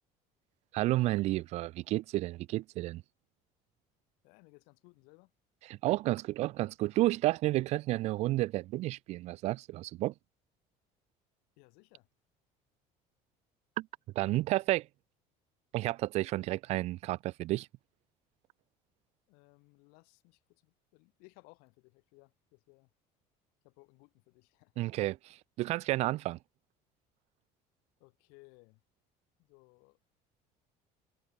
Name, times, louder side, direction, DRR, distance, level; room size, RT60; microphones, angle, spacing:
voice 1, 0.7-3.0 5.7-10.1 13.8-13.9 14.2-14.9 15.7-17.7 24.8-26.4, right 17 dB, 45° right, 0.5 m, -31 dB
voice 2, 4.2-5.3 11.6-12.1 19.3-22.9 23.6-24.8 28.0-28.8 29.4-30.0, left 31 dB, 85° left, 6.9 m, -61 dB
cardioid pair, 175°, 15 cm